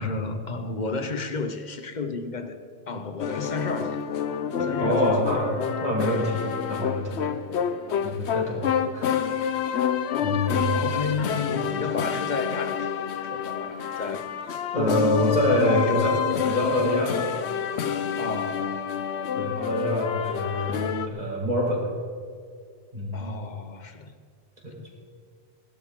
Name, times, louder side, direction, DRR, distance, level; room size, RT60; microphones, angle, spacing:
voice 1, 0.0-2.6 2.9-4.0 4.6-6.3 10.5-12.9 13.2-14.2 14.7-15.4 15.7-16.3 18.2-18.8 23.1-24.2 24.8-24.9, left 3 dB, 45° left, 8 dB, 1.0 m, -32 dB
sound 1, 3.2-21.1, left 8 dB, 85° left, 1.0 m, -28 dB
voice 2, 4.6-5.5 5.8-6.4 6.7-7.3 8.0-9.1 10.2-10.8 14.7-16.1 16.4-17.2 19.3-21.8 22.9-23.2 24.6-24.9, left 1 dB, 40° right, -4 dB, 4.3 m, -26 dB
20.0 x 12.0 x 3.8 m, 2.2 s
omnidirectional pair, 1.1 m